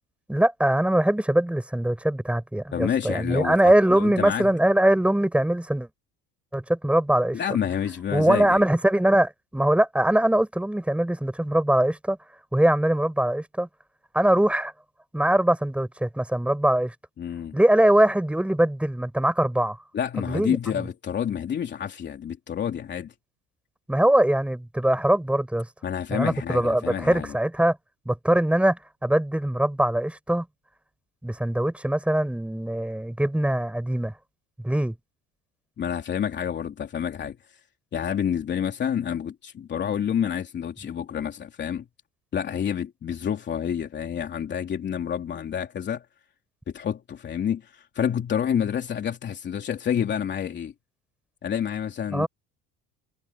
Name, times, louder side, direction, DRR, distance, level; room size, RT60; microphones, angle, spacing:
voice 1, 0.3-5.9 6.5-7.4 8.1-12.2 12.5-13.7 14.1-14.7 15.1-16.9 17.5-19.8 20.3-20.9 23.9-25.7 26.1-27.8 28.1-30.5 31.2-34.1 34.6-34.9 52.1-52.3, right 1 dB, 5° right, 6.2 m, -22 dB
voice 2, 2.7-4.5 7.3-8.6 17.2-17.6 19.9-23.1 25.8-27.3 35.8-37.4 37.9-41.9 42.3-46.0 46.7-50.7 51.4-52.3, left 8 dB, 35° left, 3.2 m, -28 dB
cardioid pair, 145°, 32 cm